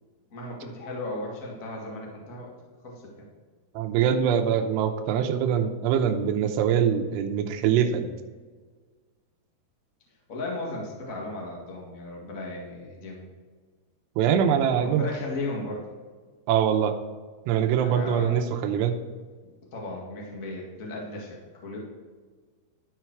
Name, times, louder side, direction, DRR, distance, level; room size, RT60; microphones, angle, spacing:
voice 1, 0.3-2.5 2.8-3.3 10.3-13.3 14.8-15.9 17.7-18.7 19.7-21.8, left 2 dB, 50° left, -2 dB, 0.9 m, -36 dB
voice 2, 3.8-8.1 14.2-15.1 16.5-16.9 17.5-19.0, right 8 dB, 85° right, 5 dB, 2.8 m, -23 dB
12.0 x 5.9 x 4.6 m, 1.5 s
omnidirectional pair, 4.8 m